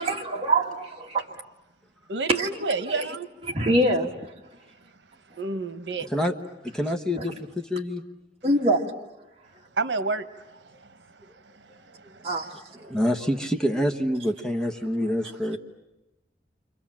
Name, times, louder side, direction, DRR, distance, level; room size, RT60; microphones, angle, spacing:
voice 1, 0.0-1.4 2.3-3.1 3.5-4.3 8.4-8.8 12.2-12.5, right 1 dB, 35° right, 2.4 m, -24 dB
voice 2, 2.1-3.3 5.4-6.1 9.8-11.2 11.5-12.3 12.8-13.0, right 3 dB, 90° right, 1.0 m, -31 dB
voice 3, 6.7-8.0 12.8-15.6, equal, 5° left, 1.2 m, -26 dB
30.0 x 25.5 x 7.4 m
head